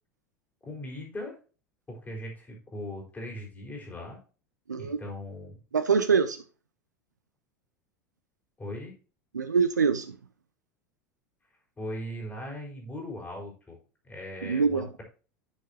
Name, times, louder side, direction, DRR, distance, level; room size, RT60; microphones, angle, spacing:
voice 1, 0.6-1.4 1.9-4.2 4.8-5.6 8.6-8.9 11.8-13.8 14.0-15.0, left 1 dB, 20° left, 4.2 m, -39 dB
voice 2, 4.7-5.0 5.7-6.4 9.3-10.2 14.4-14.9, right 5 dB, 80° right, 0.5 m, -24 dB
11.0 x 6.5 x 2.8 m
figure-of-eight pair, 80°, 9 cm